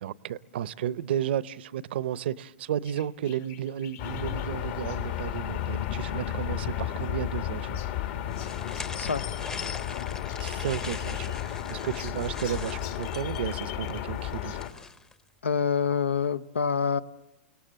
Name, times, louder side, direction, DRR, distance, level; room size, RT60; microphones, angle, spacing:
voice 1, 0.0-7.8 10.4-14.6, right 10 dB, 65° right, 0.7 m, -33 dB
sound 1, 2.8-9.7 9.9-11.6 12.0-14.7, left 11 dB, 35° left, 1.0 m, -49 dB
sound 2, 4.0-14.7, left 11 dB, 60° left, 2.0 m, -33 dB
sound 3, 8.3-15.1, left 3 dB, 10° left, 0.8 m, -42 dB
voice 2, 9.0-9.3 15.4-17.0, left 6 dB, 85° left, 0.8 m, -26 dB
29.5 x 18.5 x 7.6 m
hypercardioid pair, 110°, 6 cm